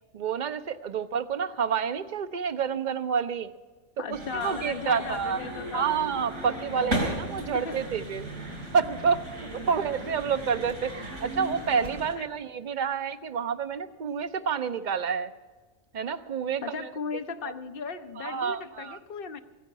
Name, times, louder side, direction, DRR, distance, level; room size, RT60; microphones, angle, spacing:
voice 1, 0.1-3.5 4.1-5.4 5.7-15.3 15.9-17.2 18.2-19.0, right 6 dB, 50° right, 0.6 m, -29 dB
voice 2, 4.0-5.9 6.3-7.1 7.5-7.8 12.2-12.3 16.6-19.4, left 6 dB, 55° left, 0.9 m, -37 dB
sound 1, 4.1-12.1, right 1 dB, 90° right, 4.5 m, -36 dB
15.5 x 9.3 x 8.3 m
omnidirectional pair, 1.2 m